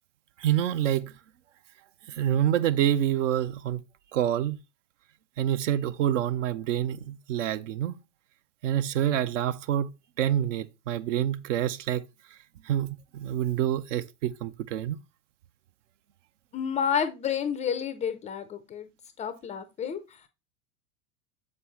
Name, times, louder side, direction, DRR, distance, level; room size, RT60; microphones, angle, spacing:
voice 1, 0.4-1.1 2.1-3.8 4.1-4.6 5.4-8.0 8.6-9.9 10.2-12.0 12.6-15.0, right 11 dB, 55° right, 0.6 m, -27 dB
voice 2, 16.5-18.9 19.2-20.0, left 8 dB, 15° left, 0.5 m, -30 dB
7.3 x 5.3 x 3.1 m
figure-of-eight pair, 85°, 45 cm